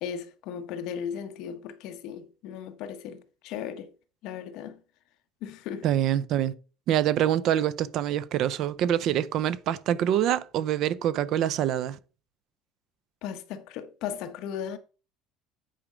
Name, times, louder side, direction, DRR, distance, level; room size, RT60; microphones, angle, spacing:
voice 1, 0.0-3.9 4.2-4.8 5.4-5.9 13.2-14.8, left 8 dB, 60° left, 1.0 m, -36 dB
voice 2, 5.8-6.5 6.9-12.0, right 11 dB, 50° right, 0.5 m, -25 dB
9.0 x 4.9 x 5.1 m
cardioid pair, 160°, 0 cm